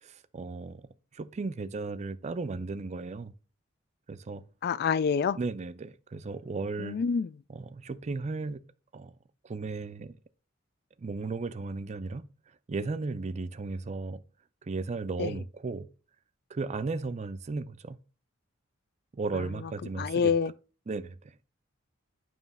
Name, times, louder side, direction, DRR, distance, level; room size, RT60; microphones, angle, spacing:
voice 1, 0.0-3.3 4.1-4.4 5.3-7.0 7.5-8.6 8.9-9.1 9.4-10.2 11.0-12.3 12.7-14.2 14.6-15.9 16.5-18.0 19.1-20.3 20.9-21.4, right 3 dB, 35° right, 0.4 m, -35 dB
voice 2, 4.6-5.4 6.8-7.3 15.2-15.3 20.0-20.5, left 6 dB, 50° left, 0.3 m, -27 dB
9.2 x 3.1 x 5.4 m
head